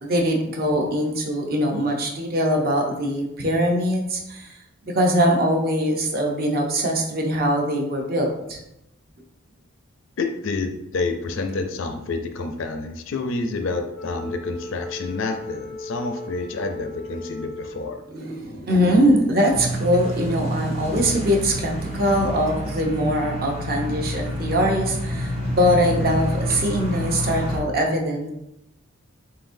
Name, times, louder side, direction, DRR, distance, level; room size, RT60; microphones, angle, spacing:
voice 1, 0.0-4.5 4.8-8.6 18.1-28.3, equal, 45° right, 1 dB, 0.7 m, -22 dB
voice 2, 10.2-18.0, left 3 dB, 65° left, 6 dB, 0.4 m, -28 dB
Wind instrument woodwind instrument, 13.9-18.3, left 2 dB, ahead, 0.4 m, -36 dB
sound 1, 19.5-27.6, equal, 30° right, 1.1 m, -28 dB
4.3 x 3.8 x 2.6 m, 0.85 s
head